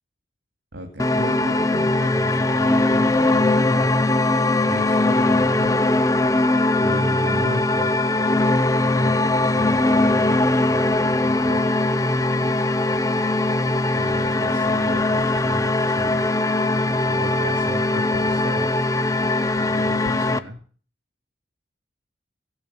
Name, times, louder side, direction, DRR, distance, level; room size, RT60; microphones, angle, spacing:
voice 1, 0.7-3.9 4.6-6.0 6.8-7.9 8.9-11.7 12.2-12.6 13.9-16.3 17.0-18.8 19.5-20.6, right 1 dB, 80° right, 2 dB, 2.6 m, -34 dB
sound 1, 1.0-20.4, left 2 dB, 15° left, 0.7 m, -20 dB
16.5 x 8.9 x 8.5 m, 0.43 s
head